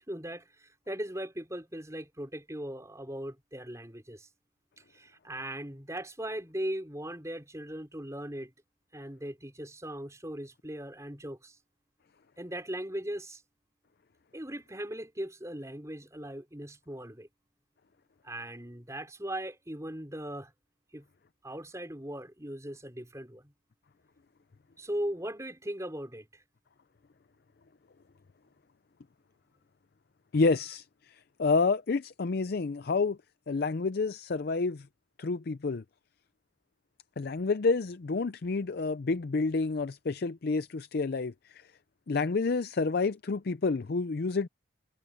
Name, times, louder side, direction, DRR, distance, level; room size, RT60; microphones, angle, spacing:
voice 1, 0.1-4.3 4.9-8.5 8.9-11.6 12.4-13.4 14.3-17.3 18.2-20.5 20.9-21.1 21.4-23.5 24.8-26.4, right 1 dB, 15° right, 4.5 m, -39 dB
voice 2, 30.3-33.2 33.5-34.9 35.2-35.8 37.2-41.6 42.1-44.5, left 4 dB, 50° left, 0.5 m, -29 dB
head